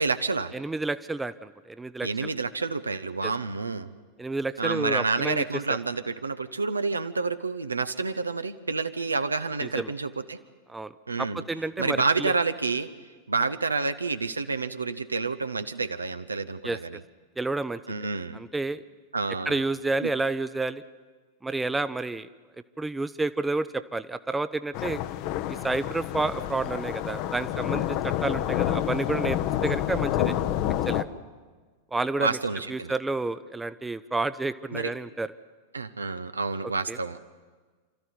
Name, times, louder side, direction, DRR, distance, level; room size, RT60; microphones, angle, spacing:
voice 1, 0.0-0.5 2.0-3.9 4.6-10.4 11.1-11.4 11.8-12.9 13.3-17.0 17.9-18.4 19.1-19.6 20.0-20.1 32.2-32.9 34.7-34.9 35.7-37.2, right 4 dB, 80° right, 11 dB, 0.9 m, -29 dB
voice 2, 0.5-2.3 3.2-3.3 4.2-5.8 9.6-9.9 10.7-10.9 11.2-12.3 16.6-16.8 17.4-17.8 18.3-18.8 19.5-20.8 21.4-22.3 22.8-25.0 25.5-30.3 30.9-31.1 31.9-32.4 32.7-35.3 36.9-37.0, right 3 dB, 10° right, 14 dB, 0.7 m, -30 dB
sound 1, 24.7-31.0, left 12 dB, 45° left, 0.9 m, -28 dB
28.0 x 14.0 x 10.0 m, 1.4 s
figure-of-eight pair, 90°, 0 cm